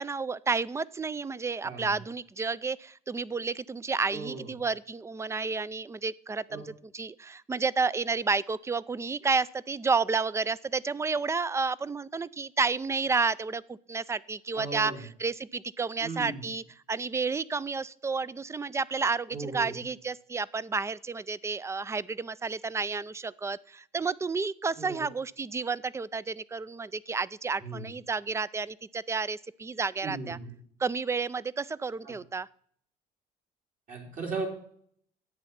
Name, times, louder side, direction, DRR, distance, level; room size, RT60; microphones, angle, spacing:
voice 1, 0.0-30.4 30.8-32.5, right 4 dB, 15° right, 20 dB, 0.4 m, -31 dB
voice 2, 4.1-4.5 6.5-6.7 14.5-15.0 16.0-16.4 19.3-19.8 24.8-25.1 27.6-27.9 30.0-30.5 32.0-32.1 33.9-34.5, right 4 dB, 50° right, 0 dB, 4.3 m, -37 dB
11.0 x 8.4 x 5.7 m, 0.63 s
cardioid pair, 110°, 17 cm